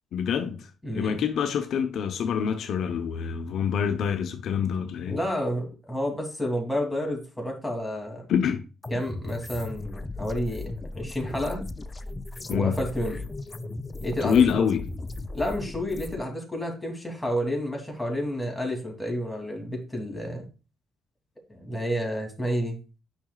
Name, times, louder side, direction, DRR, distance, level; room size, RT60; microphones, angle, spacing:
voice 1, 0.1-5.2 8.3-8.6 12.5-12.8 14.2-14.9, left 7 dB, 70° left, 0.8 m, -26 dB
voice 2, 0.8-1.2 5.1-8.2 8.9-11.6 12.5-13.3 14.0-14.7 15.3-20.5 21.5-22.8, equal, 5° left, 2.7 m, -30 dB
sound 1, 8.8-16.2, left 2 dB, 25° left, 0.5 m, -36 dB
9.2 x 5.8 x 2.4 m
cardioid pair, 90°, 0 cm